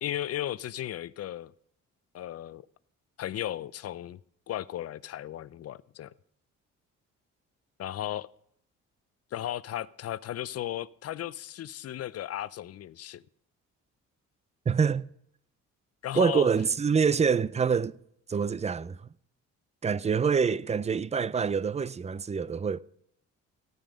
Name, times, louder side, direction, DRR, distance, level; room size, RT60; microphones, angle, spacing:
voice 1, 0.0-1.5 2.1-2.7 3.2-4.2 4.5-6.1 7.8-8.3 9.3-13.2 16.0-16.5, left 12 dB, 55° left, 0.5 m, -35 dB
voice 2, 14.7-15.1 16.1-18.0 18.3-19.1 19.8-22.8, right 6 dB, 20° right, 0.4 m, -26 dB
14.0 x 9.0 x 5.1 m
cardioid pair, 90°, 30 cm